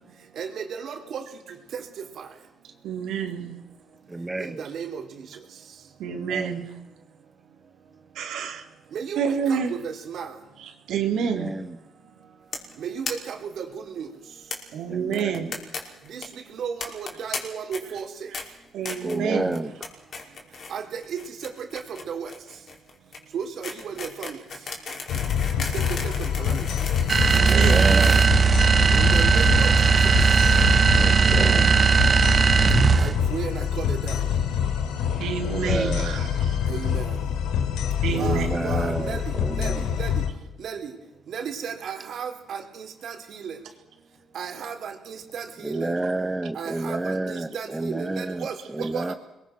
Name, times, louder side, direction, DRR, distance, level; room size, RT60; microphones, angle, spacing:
voice 1, 0.4-1.2 4.6-5.0 8.9-9.2 9.5-10.3 12.8-13.7 14.0-14.1 16.1-16.2 16.5-18.1 20.7-21.2 22.1-22.3 23.3-24.4 26.2-26.6 28.9-29.7 33.0-34.2 36.7-37.0 38.1-39.2 39.6-39.7 40.0-40.1 40.6-40.9 41.3-43.5 44.3-45.9 46.6-48.5 48.9-49.2, right 7 dB, 65° right, 4.3 m, -34 dB
voice 2, 2.8-3.5 6.0-6.7 8.2-8.7 9.2-9.7 10.9-11.5 14.7-15.6 18.7-19.6 25.1-25.2 27.3-27.9 31.0-31.8 35.2-36.7 38.0-38.5, right 7 dB, 85° right, 3.9 m, -28 dB
voice 3, 4.1-4.6 6.1-6.6 11.1-11.8 14.9-15.6 19.0-19.7 27.4-28.2 30.9-31.7 35.4-36.2 38.1-40.0 45.6-49.1, right 2 dB, 15° right, 1.3 m, -30 dB
sound 1, 12.5-12.7 13.0-13.1 13.4-13.5 13.7-13.8 14.5-14.6 15.1-15.8 16.0-16.2 16.8-17.4 17.7-18.0 18.3-18.4 18.8-19.2 19.5-19.9 20.1-20.7 21.0-29.1, left 4 dB, 55° left, 5.4 m, -35 dB
sound 2, 25.1-40.3, left 8 dB, 90° left, 2.8 m, -26 dB
sound 3, 27.1-33.2, right 5 dB, 40° right, 0.7 m, -18 dB
28.5 x 22.0 x 6.3 m
cardioid pair, 90°, 0 cm